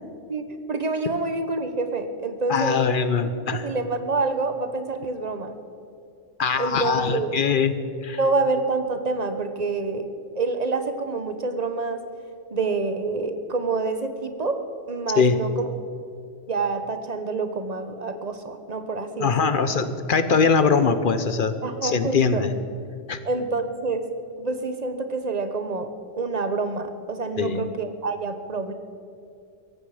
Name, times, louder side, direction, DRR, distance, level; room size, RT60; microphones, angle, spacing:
voice 1, 0.3-2.8 3.5-5.5 6.6-7.3 8.2-10.1 10.3-12.0 12.5-14.6 14.9-15.6 16.5-19.6 21.6-22.5 23.2-24.1 24.4-25.9 26.2-28.7, right 3 dB, 35° right, 8 dB, 1.0 m, -27 dB
voice 2, 2.5-3.7 6.4-7.7 8.0-8.2 15.2-15.4 19.2-21.5 21.8-22.5 23.1-23.2 27.4-27.7, left 5 dB, 50° left, 11 dB, 0.8 m, -22 dB
17.5 x 15.0 x 5.0 m, 2.4 s
omnidirectional pair, 1.3 m